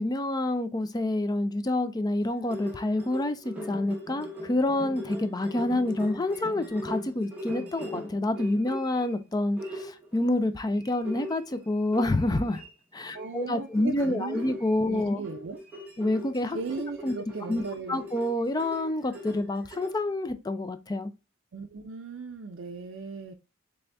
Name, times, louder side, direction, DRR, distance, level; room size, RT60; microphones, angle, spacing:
voice 1, 0.0-12.6 12.9-15.2 16.0-16.6 17.0-17.1 17.5-17.6 17.9-21.1, left 1 dB, 20° left, 0.4 m, -28 dB
sound 1, 2.2-9.1 9.6-10.2 10.8-12.7 13.1-13.4 13.7-13.9 14.3-20.0, equal, 10° right, 1.0 m, -40 dB
voice 2, 13.1-14.6 14.9-15.6 16.5-18.1 21.5-23.3, right 4 dB, 70° right, 0.5 m, -37 dB
3.9 x 3.4 x 3.4 m
head